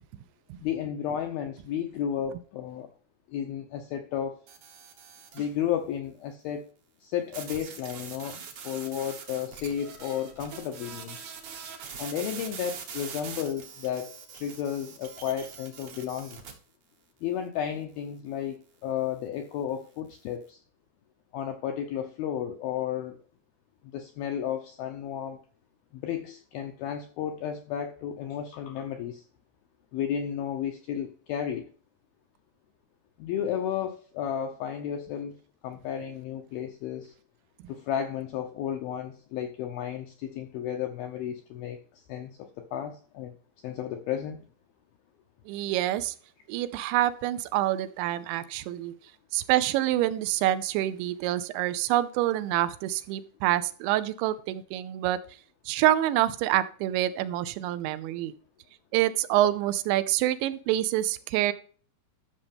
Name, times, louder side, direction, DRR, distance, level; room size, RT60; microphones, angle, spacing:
voice 1, 0.6-2.9 3.3-4.4 5.3-6.7 7.0-11.3 12.0-16.4 17.2-20.6 21.3-23.2 23.9-25.4 25.9-29.2 29.9-31.6 33.2-35.4 35.6-37.1 37.7-43.4 43.6-44.5, left 9 dB, 80° left, 5 dB, 2.2 m, -33 dB
sound 1, 4.5-5.5 7.3-16.5, right 6 dB, 65° right, 1.8 m, -43 dB
voice 2, 45.5-46.2 46.5-48.9 49.3-55.2 55.7-58.3 58.9-61.5, right 13 dB, 85° right, 13 dB, 3.0 m, -26 dB
13.0 x 6.5 x 3.6 m, 0.42 s
omnidirectional pair, 5.3 m